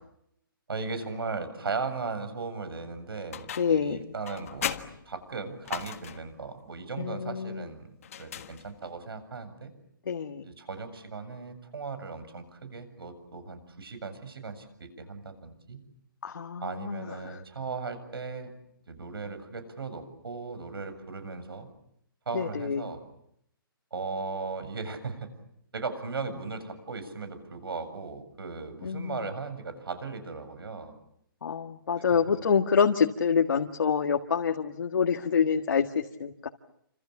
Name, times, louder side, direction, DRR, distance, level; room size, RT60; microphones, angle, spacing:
voice 1, 0.7-4.8 5.1-7.9 8.2-9.7 10.4-15.8 16.6-18.5 18.9-21.7 22.3-23.0 23.9-25.3 25.7-30.9, right 4 dB, 85° right, 11 dB, 7.5 m, -37 dB
sound 1, 3.3-3.9 4.2-6.3 8.0-9.0, left 9 dB, 40° left, 1.6 m, -37 dB
voice 2, 3.6-4.1 7.0-7.6 10.1-10.5 16.2-17.4 22.3-22.9 28.8-29.2 31.4-36.5, left 6 dB, 65° left, 3 dB, 1.8 m, -27 dB
29.5 x 26.5 x 7.3 m, 0.73 s
hypercardioid pair, 175°, 12 cm